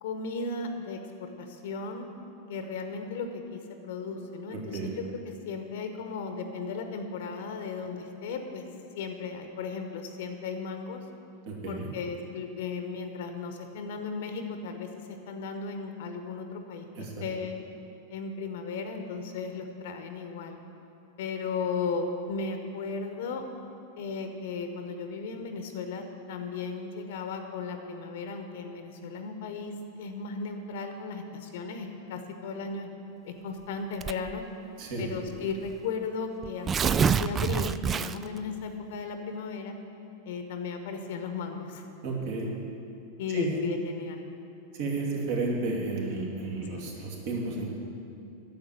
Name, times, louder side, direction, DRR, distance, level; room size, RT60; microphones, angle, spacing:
voice 1, 0.0-2.1 2.5-8.6 8.9-11.0 11.7-16.9 17.2-17.6 18.1-20.6 21.2-23.4 24.0-32.9 33.2-34.4 35.0-39.7 40.3-41.8 43.2-44.2 46.7-46.9, left 4 dB, 55° left, 6 dB, 1.1 m, -35 dB
voice 2, 4.5-4.9 11.5-11.9 17.0-17.1 34.8-35.0 42.0-42.5 43.3-43.5 44.7-47.7, right 3 dB, 50° right, -1 dB, 2.4 m, -32 dB
Tearing, 34.0-34.4 35.3-35.4 35.7-35.8 36.4-38.4, right 7 dB, 20° right, 0.3 m, -26 dB
10.5 x 7.4 x 9.2 m, 2.7 s
figure-of-eight pair, 90°, 0 cm